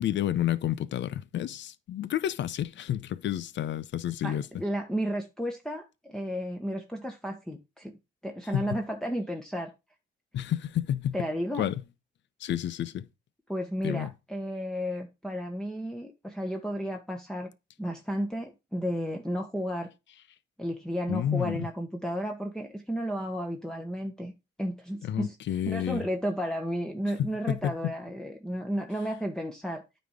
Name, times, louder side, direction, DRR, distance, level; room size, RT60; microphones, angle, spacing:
voice 1, 0.0-4.4 8.5-8.7 10.3-11.2 11.6-11.7 12.4-13.1 13.8-14.1 21.1-21.7 25.0-26.0 27.2-27.7, left 11 dB, 65° left, 0.7 m, -30 dB
voice 2, 4.2-7.9 8.2-9.7 11.1-11.7 13.5-17.5 17.8-19.9 20.6-24.3 24.6-25.4 25.7-29.8, equal, 5° left, 1.3 m, -33 dB
9.2 x 4.3 x 4.9 m
cardioid pair, 90°, 20 cm